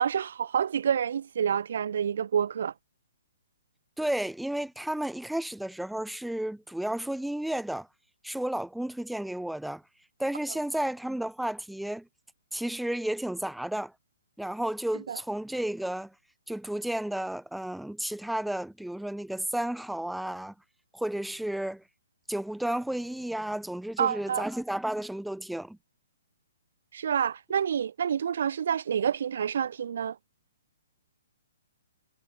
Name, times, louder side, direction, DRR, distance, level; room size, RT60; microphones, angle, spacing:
voice 1, 0.0-2.7 15.1-15.2 24.0-24.5 26.9-30.2, right 8 dB, 65° right, 3.3 m, -28 dB
voice 2, 4.0-7.9 8.2-9.8 10.2-12.1 12.5-13.9 14.4-16.1 16.5-20.5 20.9-21.8 22.3-25.8, right 1 dB, ahead, 1.1 m, -32 dB
hypercardioid pair, 140°, 0 cm